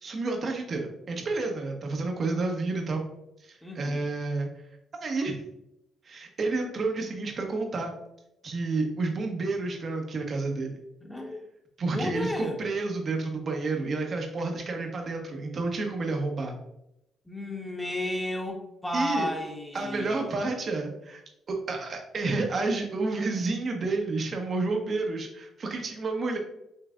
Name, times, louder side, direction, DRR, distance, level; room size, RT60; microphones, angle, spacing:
voice 1, 0.0-3.0 3.4-4.5 5.0-5.4 6.0-7.9 8.4-10.8 11.8-16.6 18.9-19.3 19.7-21.2 21.5-26.4, right 3 dB, 50° right, 3 dB, 1.1 m, -30 dB
voice 2, 3.6-4.1 11.0-11.4 11.9-12.6 17.3-20.2, left 1 dB, 5° left, 1 dB, 1.2 m, -33 dB
5.6 x 3.3 x 2.5 m, 0.82 s
supercardioid pair, 70°, 0 cm